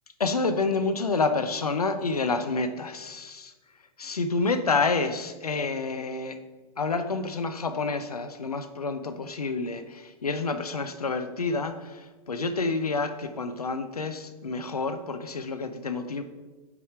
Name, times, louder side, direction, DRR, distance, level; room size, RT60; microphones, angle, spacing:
voice 1, 0.2-3.5 4.0-6.4 6.8-16.2, left 3 dB, 90° left, 9 dB, 0.5 m, -28 dB
4.9 x 4.9 x 4.5 m, 1.3 s
figure-of-eight pair, 100°, 19 cm